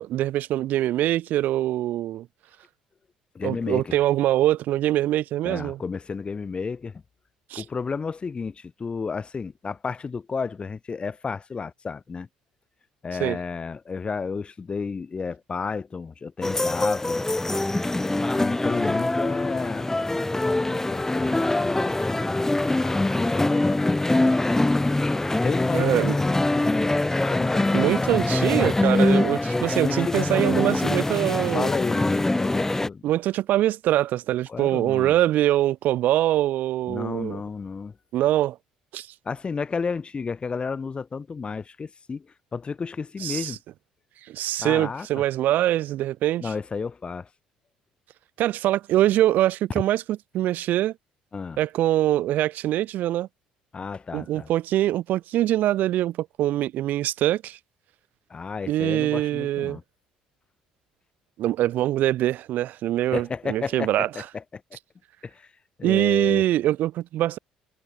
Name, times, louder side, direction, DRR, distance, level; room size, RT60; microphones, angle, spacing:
voice 1, 0.0-2.3 3.4-5.8 7.5-7.6 13.2-13.4 25.7-26.1 27.7-31.7 33.0-37.4 38.1-38.6 38.9-39.1 43.2-43.5 44.3-46.5 48.4-50.9 51.6-53.3 54.1-57.6 58.7-59.8 61.4-64.1 65.8-67.4, right 14 dB, 60° right, 2.5 m, -23 dB
voice 2, 3.3-4.0 5.4-7.0 7.6-12.3 13.0-17.2 18.4-19.9 20.6-24.6 25.4-28.2 29.8-30.6 31.5-33.0 34.5-35.2 36.9-37.9 39.2-43.6 44.6-45.1 46.4-47.3 51.3-51.6 53.7-54.5 58.3-59.8 63.1-64.6 65.2-65.5 65.8-66.4, left 5 dB, 30° left, 2.7 m, -32 dB
sound 1, 16.4-32.9, left 2 dB, 15° left, 1.8 m, -23 dB
figure-of-eight pair, 50°, 3 cm